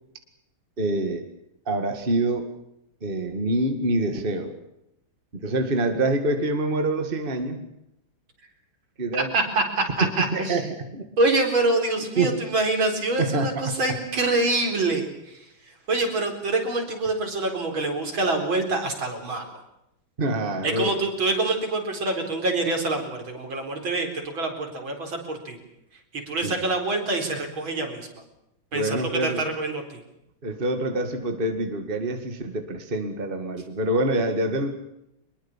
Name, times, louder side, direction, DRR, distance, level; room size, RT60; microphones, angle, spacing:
voice 1, 0.8-1.2 1.7-2.5 3.0-4.5 5.4-7.7 9.0-9.3 10.0-11.0 12.2-12.4 13.2-13.7 20.2-20.9 26.4-26.5 28.7-29.4 30.4-34.7, right 2 dB, 25° right, 6 dB, 2.2 m, -26 dB
voice 2, 9.1-10.6 11.2-19.5 20.6-25.6 26.1-28.1 28.7-30.0, right 2 dB, 70° right, 3 dB, 5.1 m, -26 dB
24.0 x 22.0 x 7.4 m, 0.83 s
omnidirectional pair, 2.3 m